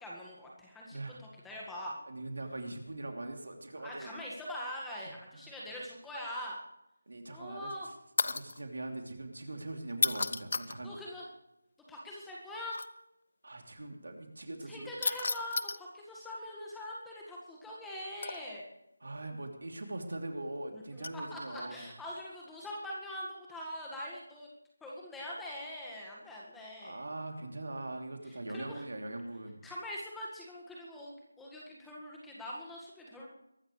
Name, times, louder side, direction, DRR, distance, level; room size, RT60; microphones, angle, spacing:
voice 1, 0.0-2.0 3.8-6.6 7.3-7.9 10.8-11.3 11.9-12.8 14.7-18.7 20.7-20.8 21.3-24.5 24.8-27.0 28.3-28.8 29.6-33.3, left 1 dB, 5° left, -4 dB, 1.8 m, -43 dB
voice 2, 2.1-4.1 5.3-5.8 7.1-7.9 8.2-10.9 13.4-14.9 19.0-21.9 26.8-29.6, right 2 dB, 65° right, 3 dB, 3.1 m, -41 dB
sound 1, 8.2-8.6 9.9-10.8 12.7-12.9 15.0-15.8 18.2-18.6 21.0-21.3 22.2-22.4, left 3 dB, 55° left, 0.7 m, -32 dB
23.0 x 12.5 x 3.3 m, 0.83 s
figure-of-eight pair, 165°, 0 cm